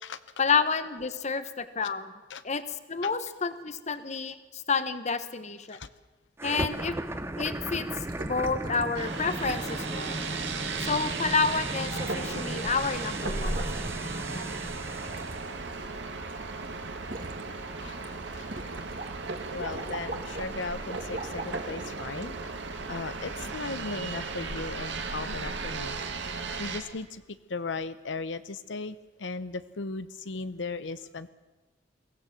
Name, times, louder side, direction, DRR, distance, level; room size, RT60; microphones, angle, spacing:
voice 1, 0.4-2.1 2.4-2.6 2.9-5.8 6.4-7.0 7.4-7.9 8.2-10.2 10.8-13.6, left 5 dB, 40° left, 11 dB, 1.2 m, -29 dB
sound 1, 6.4-15.5, right 1 dB, 15° right, 0.9 m, -37 dB
sound 2, 8.1-9.0 9.4-9.8 10.0-10.2 11.1-11.2 11.5-12.5 12.7-14.2 14.8-16.3 16.6-17.4 17.9-18.1 18.5-19.1 19.4-20.5 20.9-21.5 22.2-22.3, right 2 dB, 50° right, 2.2 m, -41 dB
sound 3, 8.9-26.8, right 3 dB, 75° right, 2.1 m, -35 dB
voice 2, 17.8-18.7 19.5-22.3 22.9-26.0 26.6-27.2 27.5-31.3, left 3 dB, 90° left, 13 dB, 0.8 m, -37 dB
22.5 x 17.0 x 7.5 m, 1.2 s
head